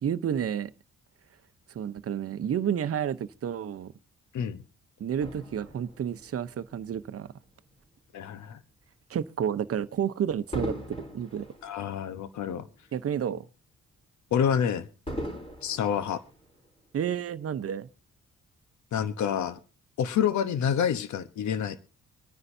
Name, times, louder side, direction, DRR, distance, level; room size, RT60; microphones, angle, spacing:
voice 1, 0.0-0.7 1.7-3.9 5.0-7.3 9.1-11.5 12.9-13.5 16.9-17.9, right 9 dB, 55° right, 0.8 m, -30 dB
Fireworks, 5.2-7.8 8.4-8.6 10.5-13.0 13.4-13.5 15.1-16.9 17.7-17.8, equal, 20° left, 4.3 m, -40 dB
voice 2, 8.1-8.6 11.6-12.7 14.3-14.9 15.6-16.2 18.9-19.6 20.0-21.8, left 8 dB, 80° left, 1.0 m, -28 dB
25.0 x 9.7 x 2.7 m
cardioid pair, 90°, 29 cm